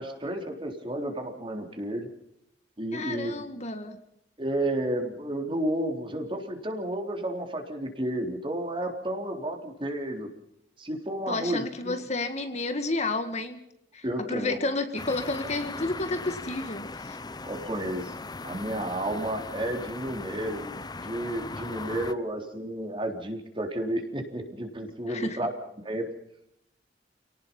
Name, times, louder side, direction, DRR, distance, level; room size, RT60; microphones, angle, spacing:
voice 1, 0.0-2.1 2.8-3.5 4.4-10.3 10.8-12.0 14.0-14.6 17.4-18.1 18.4-25.5 25.8-26.1, right 1 dB, 30° right, 3 dB, 3.8 m, -32 dB
voice 2, 2.9-4.0 11.3-13.6 13.9-17.2 25.1-25.4, left 2 dB, 40° left, 8 dB, 1.9 m, -31 dB
sound 1, 15.0-22.1, left 3 dB, 25° left, 0.7 m, -39 dB
29.0 x 18.5 x 5.5 m, 0.76 s
head